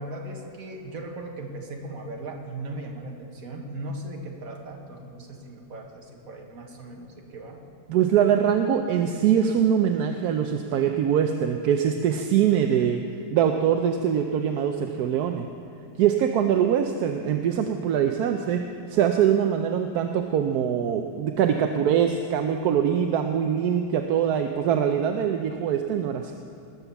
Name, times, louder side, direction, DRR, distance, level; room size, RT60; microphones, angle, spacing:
voice 1, 0.0-7.6, right 1 dB, 55° right, 1 dB, 1.9 m, -38 dB
voice 2, 7.9-13.0 13.3-15.5 16.0-18.6 18.9-26.3, right 8 dB, 75° right, 5 dB, 1.1 m, -23 dB
20.0 x 7.3 x 7.0 m, 2.6 s
omnidirectional pair, 1.8 m